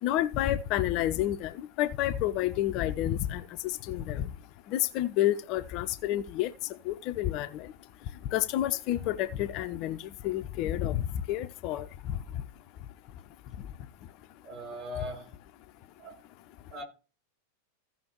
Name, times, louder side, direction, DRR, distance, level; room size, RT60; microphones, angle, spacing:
voice 1, 0.0-1.5 1.8-3.4 3.9-4.3 4.7-6.5 6.9-7.7 8.3-10.0 10.2-11.0 11.3-11.9, left 13 dB, 40° left, 0.5 m, -29 dB
voice 2, 14.4-15.4 16.0-16.2 16.7-16.8, left 1 dB, 35° right, 4.1 m, -40 dB
15.5 x 5.6 x 3.0 m
figure-of-eight pair, 90°, 0 cm